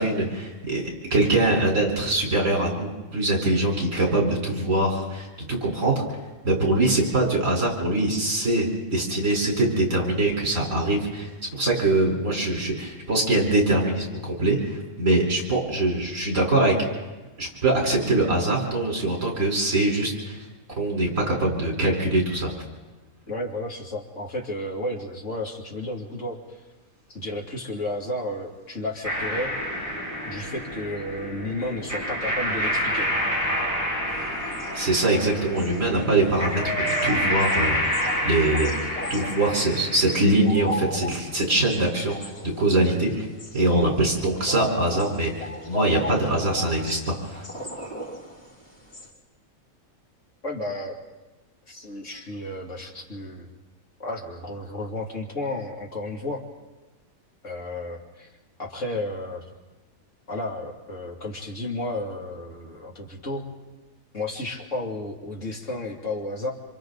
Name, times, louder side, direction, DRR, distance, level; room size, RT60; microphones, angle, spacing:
voice 1, 0.0-6.0 6.4-16.7 17.4-20.4 20.8-22.5 34.7-37.8 38.2-38.7 39.1-42.2 42.4-43.3 43.5-47.4, right 2 dB, 65° right, -1 dB, 4.7 m, -23 dB
voice 2, 23.3-26.4 27.1-29.5 30.3-33.1 50.4-51.0 51.7-53.5 54.0-56.4 57.4-58.3 58.6-59.4 60.3-63.5 64.1-66.5, left 1 dB, 60° left, 0 dB, 3.0 m, -32 dB
sound 1, 29.0-40.2, equal, 10° left, 6.7 m, -28 dB
sound 2, 34.1-49.1, left 1 dB, 80° left, 4.8 m, -36 dB
27.0 x 26.5 x 4.0 m, 1.1 s
omnidirectional pair, 1.4 m